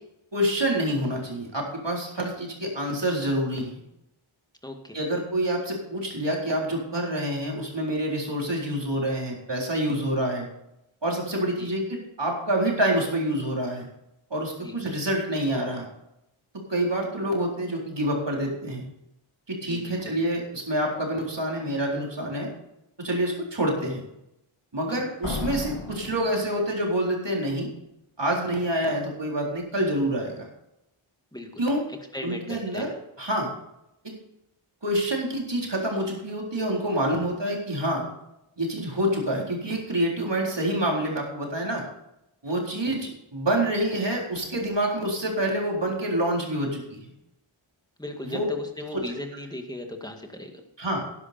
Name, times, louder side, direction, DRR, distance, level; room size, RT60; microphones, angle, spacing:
voice 1, 0.3-3.8 4.9-10.5 11.0-13.9 14.3-15.9 16.7-18.9 19.5-22.5 23.0-24.0 24.7-27.7 28.2-30.5 31.6-31.8 32.2-33.5 34.8-38.1 38.6-41.8 42.4-47.1 48.2-48.4 48.9-49.0 50.8-51.1, right 1 dB, 55° right, -1 dB, 4.0 m, -27 dB
voice 2, 4.6-5.0 11.6-11.7 14.6-14.8 19.6-20.2 24.9-25.0 31.3-31.6 32.1-32.9 43.0-43.1 48.0-50.5, left 1 dB, 10° left, 3 dB, 2.1 m, -37 dB
Slam, 25.2-27.1, left 3 dB, 80° left, 2.1 m, -34 dB
12.0 x 10.5 x 4.4 m, 0.85 s
wide cardioid pair, 60°, 50 cm